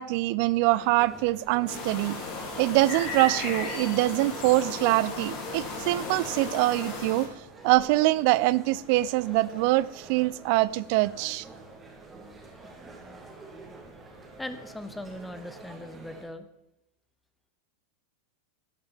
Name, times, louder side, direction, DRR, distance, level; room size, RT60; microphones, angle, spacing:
voice 1, 0.0-2.1 2.6-7.3 7.6-11.4, right 18 dB, 45° right, 19 dB, 0.4 m, -24 dB
sound 1, 0.7-16.2, right 2 dB, 15° right, 2.1 m, -48 dB
sound 2, 1.7-7.3, left 3 dB, 40° left, 3.4 m, -35 dB
voice 2, 14.4-16.5, left 1 dB, 5° left, 10 dB, 0.8 m, -39 dB
12.5 x 6.7 x 7.3 m, 0.85 s
figure-of-eight pair, 90°, 0 cm